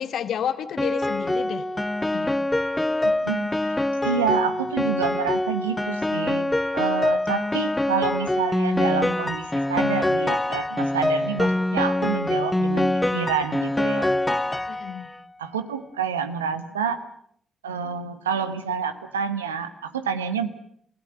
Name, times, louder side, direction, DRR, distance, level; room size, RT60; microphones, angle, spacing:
voice 1, 0.0-1.7 2.1-2.4 14.7-15.1, left 9 dB, 60° left, 13 dB, 1.2 m, -30 dB
Piano, 0.8-15.2, left 1 dB, 15° left, 1.0 m, -24 dB
voice 2, 3.0-3.8 4.0-14.1 15.4-17.0 17.6-20.5, right 7 dB, 80° right, 11 dB, 1.1 m, -28 dB
29.5 x 17.0 x 7.8 m, 0.66 s
figure-of-eight pair, 40°, 0 cm